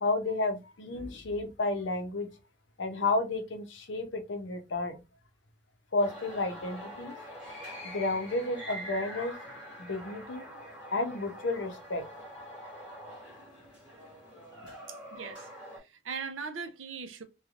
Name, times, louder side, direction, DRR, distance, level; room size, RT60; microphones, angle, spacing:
voice 1, 0.0-2.3 2.8-5.0 5.9-7.1 7.8-9.3 9.8-10.4 10.9-12.0, left 2 dB, 70° left, 0.7 m, -31 dB
sound 1, 6.0-15.8, equal, 5° right, 1.5 m, -45 dB
voice 2, 14.9-17.2, right 5 dB, 85° right, 0.6 m, -40 dB
3.2 x 2.3 x 2.4 m
head